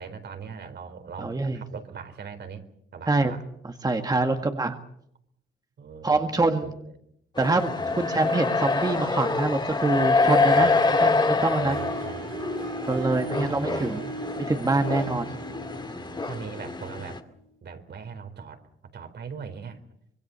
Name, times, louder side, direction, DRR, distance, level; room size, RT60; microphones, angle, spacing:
voice 1, 0.0-2.6 2.9-3.4 4.2-4.5 5.8-6.7 7.8-8.1 10.5-11.0 11.6-12.4 13.0-13.9 15.0-15.4 15.7-17.2 17.6-18.6 18.9-19.8, right 6 dB, 60° right, 8 dB, 3.9 m, -41 dB
voice 2, 1.2-1.6 3.1-3.3 3.8-4.8 6.0-6.7 7.4-10.7 11.0-11.8 12.9-14.1 14.4-15.4, right 3 dB, 20° right, 6 dB, 1.8 m, -25 dB
sound 1, 7.4-17.2, left 3 dB, 20° left, 2.3 m, -26 dB
Harp, 10.5-17.4, right 3 dB, 90° right, 5.8 m, -38 dB
25.5 x 22.5 x 6.9 m, 0.74 s
cardioid pair, 90°, 20 cm